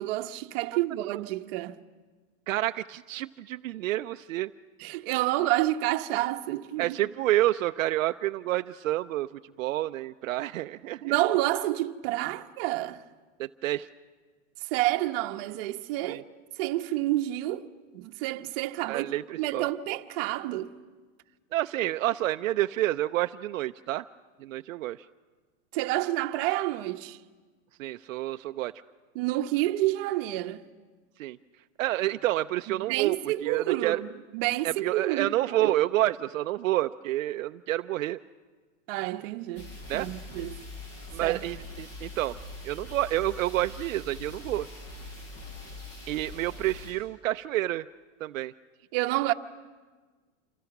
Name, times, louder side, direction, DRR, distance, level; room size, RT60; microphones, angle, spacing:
voice 1, 0.0-1.8 4.8-7.0 11.0-13.0 14.7-16.2 16.6-17.7 17.9-19.1 19.4-20.7 25.7-27.2 29.1-30.6 32.8-35.3 38.9-39.7 39.9-40.6 41.2-41.4 48.9-49.3, right 16 dB, 50° right, 1.1 m, -29 dB
voice 2, 2.5-4.5 6.8-11.1 13.4-13.9 16.1-16.2 18.9-19.7 21.5-24.1 24.4-25.0 27.8-28.7 31.2-31.4 31.8-34.0 34.6-38.2 39.9-40.1 41.1-42.4 42.6-44.7 46.1-47.9 48.2-48.5, right 15 dB, 80° right, 0.6 m, -29 dB
sound 1, 39.6-46.9, left 2 dB, 35° left, 6.3 m, -43 dB
27.5 x 24.5 x 5.9 m
supercardioid pair, 140°, 39 cm